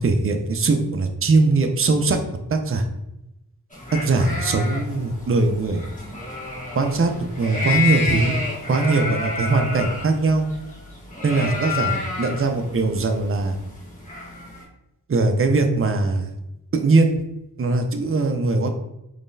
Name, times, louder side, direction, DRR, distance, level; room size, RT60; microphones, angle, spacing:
voice 1, 0.0-2.2 2.5-2.8 3.9-5.8 6.8-7.1 7.4-8.3 8.7-10.5 11.2-13.6 15.1-16.3 16.7-17.2 17.6-18.7, right 3 dB, 35° right, 5 dB, 0.4 m, -20 dB
sound 1, 3.7-14.6, left 3 dB, 20° left, 1.1 m, -30 dB
3.7 x 3.2 x 2.6 m, 0.89 s
wide cardioid pair, 45°, 39 cm